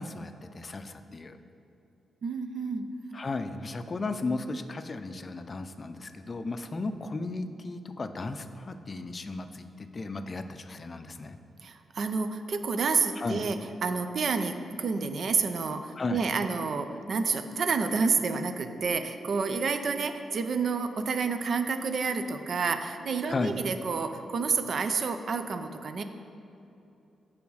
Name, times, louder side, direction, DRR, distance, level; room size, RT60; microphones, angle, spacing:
voice 1, 0.0-1.4 3.1-11.4 13.2-13.5 16.0-16.2 23.3-23.6, left 3 dB, 35° left, 9 dB, 0.5 m, -35 dB
voice 2, 2.2-2.9 11.6-26.0, right 4 dB, 60° right, 8 dB, 0.5 m, -29 dB
7.0 x 4.9 x 6.3 m, 2.8 s
cardioid pair, 85°, 0 cm